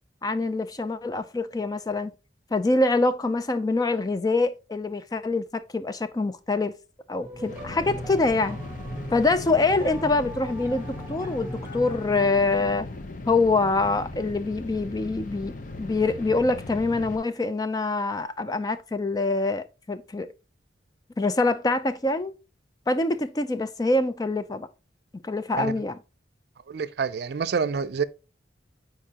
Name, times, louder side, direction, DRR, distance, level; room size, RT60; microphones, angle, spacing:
voice 1, 0.2-2.1 2.5-6.7 7.1-8.6 9.1-12.9 13.3-20.3 21.2-22.3 22.9-24.7 25.2-26.0, left 3 dB, 20° left, 0.4 m, -25 dB
sound 1, 7.2-12.3, equal, 15° right, 1.3 m, -40 dB
sound 2, 7.4-17.2, left 2 dB, 45° left, 0.7 m, -38 dB
voice 2, 26.7-28.0, right 5 dB, 60° right, 0.4 m, -27 dB
8.7 x 4.6 x 2.8 m
head